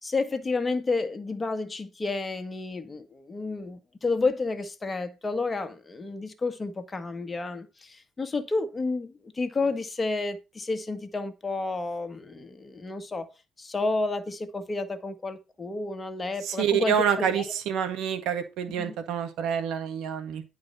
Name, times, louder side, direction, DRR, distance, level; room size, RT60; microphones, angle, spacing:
voice 1, 0.0-13.3 13.6-17.5 18.8-18.9, left 3 dB, 25° left, 1.6 m, -31 dB
voice 2, 16.4-20.4, right 8 dB, 75° right, 1.9 m, -27 dB
10.5 x 4.8 x 5.6 m
supercardioid pair, 75°, 0 cm